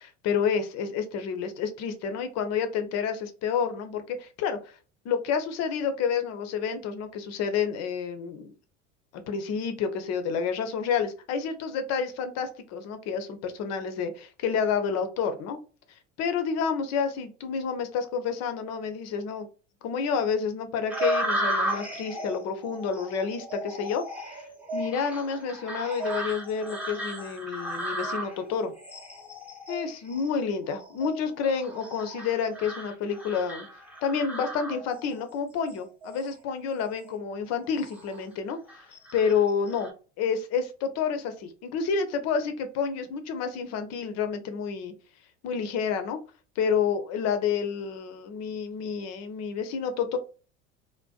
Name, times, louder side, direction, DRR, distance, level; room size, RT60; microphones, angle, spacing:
voice 1, 0.2-4.8 5.0-8.5 9.1-15.6 16.2-19.5 19.8-24.0 24.3-24.4 24.7-28.7 29.7-33.7 34.0-38.8 39.1-39.9 40.2-44.9 45.4-46.2 46.6-50.2, left 6 dB, 45° left, 8 dB, 0.6 m, -29 dB
sound 1, 20.9-35.2 35.7-36.3 36.8-37.0 37.5-38.2 38.7-39.9, right 1 dB, 5° right, 0.7 m, -35 dB
2.5 x 2.2 x 2.3 m, 0.36 s
hypercardioid pair, 75°, 37 cm